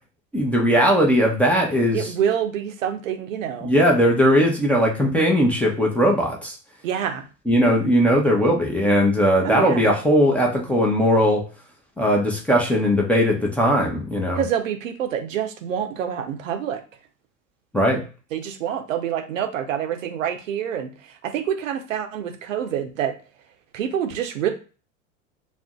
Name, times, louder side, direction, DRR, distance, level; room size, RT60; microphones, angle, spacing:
voice 1, 0.3-2.0 3.6-6.5 7.5-11.4 12.0-14.4 17.7-18.0, equal, 5° left, -2 dB, 0.5 m, -19 dB
voice 2, 1.9-3.8 6.8-7.3 9.4-9.9 14.4-16.8 18.3-20.9 21.2-23.1 23.7-24.5, right 9 dB, 75° right, 7 dB, 0.6 m, -26 dB
2.5 x 2.0 x 3.5 m, 0.35 s
hypercardioid pair, 90°, 39 cm